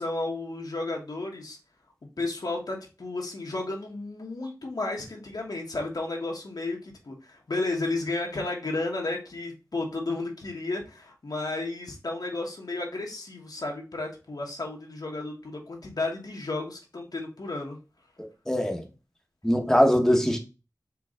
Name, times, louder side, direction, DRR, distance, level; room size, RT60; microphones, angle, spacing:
voice 1, 0.0-1.6 2.2-17.8, left 2 dB, 75° left, 1.3 m, -33 dB
voice 2, 18.5-18.8 19.4-20.4, equal, 5° left, 1.0 m, -21 dB
4.6 x 3.1 x 3.7 m
wide cardioid pair, 55°, 7 cm